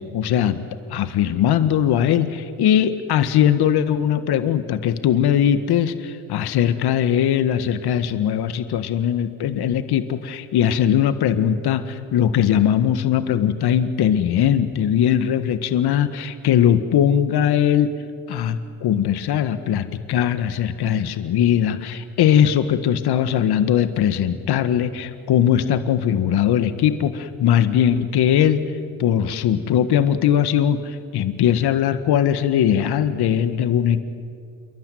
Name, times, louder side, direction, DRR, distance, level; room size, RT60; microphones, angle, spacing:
voice 1, 0.1-17.9 18.3-28.6 29.0-34.0, left 9 dB, 55° left, 11 dB, 1.8 m, -20 dB
27.5 x 23.5 x 9.4 m, 2.3 s
supercardioid pair, 80°, 45 cm